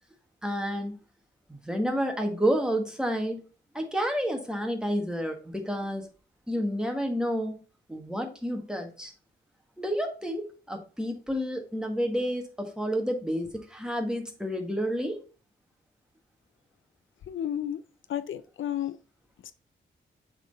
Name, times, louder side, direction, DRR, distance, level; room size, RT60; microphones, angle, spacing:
voice 1, 0.4-0.9 1.5-3.4 3.7-6.1 6.5-7.6 7.9-9.1 9.8-15.2, equal, 5° right, 1.5 m, -30 dB
voice 2, 17.3-17.8 18.1-19.0 19.4-19.5, left 10 dB, 80° left, 0.5 m, -32 dB
7.2 x 3.9 x 4.1 m
wide cardioid pair, 100°, 20 cm